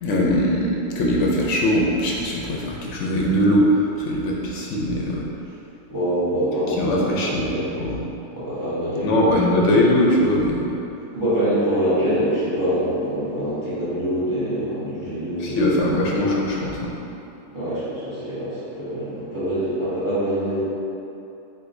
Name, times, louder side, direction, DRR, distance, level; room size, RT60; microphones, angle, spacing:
voice 1, 0.0-5.3 6.8-7.5 7.8-8.0 9.0-10.7 15.4-16.9, left 1 dB, 65° left, -3 dB, 0.8 m, -21 dB
voice 2, 5.9-7.7 8.3-9.6 11.1-16.4 17.5-20.6, equal, 15° right, -11 dB, 1.0 m, -25 dB
4.8 x 3.6 x 2.6 m, 2.8 s
omnidirectional pair, 1.6 m